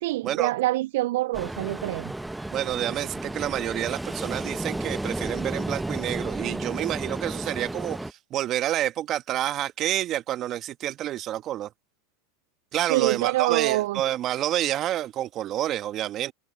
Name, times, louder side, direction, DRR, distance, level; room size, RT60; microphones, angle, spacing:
voice 1, 0.0-2.1 12.9-14.0, right 17 dB, 70° right, 0.4 m, -25 dB
Ocean, 1.3-8.1, right 1 dB, 5° right, 0.8 m, -33 dB
voice 2, 2.5-11.7 12.7-16.3, right 12 dB, 40° right, 1.5 m, -28 dB
hypercardioid pair, 95°, 0 cm